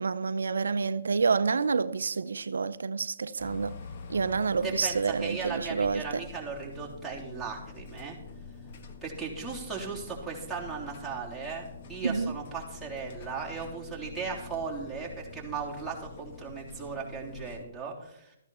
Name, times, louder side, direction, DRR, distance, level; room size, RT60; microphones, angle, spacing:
voice 1, 0.0-3.7 4.1-6.2 12.0-12.3, right 5 dB, 85° right, 0.5 m, -28 dB
sound 1, 3.4-17.6, left 4 dB, 45° left, 1.5 m, -46 dB
voice 2, 4.6-8.2 9.0-18.4, right 5 dB, ahead, 3.4 m, -37 dB
13.5 x 11.0 x 4.3 m
hypercardioid pair, 150°, 0 cm